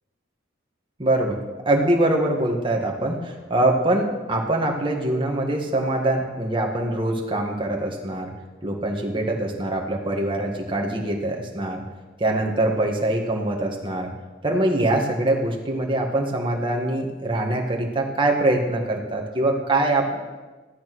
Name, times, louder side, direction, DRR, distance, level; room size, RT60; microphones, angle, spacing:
voice 1, 1.0-1.4 1.7-8.3 8.6-11.8 12.2-14.1 14.4-20.1, right 1 dB, 25° right, 0 dB, 1.9 m, -23 dB
14.5 x 12.0 x 6.3 m, 1.3 s
head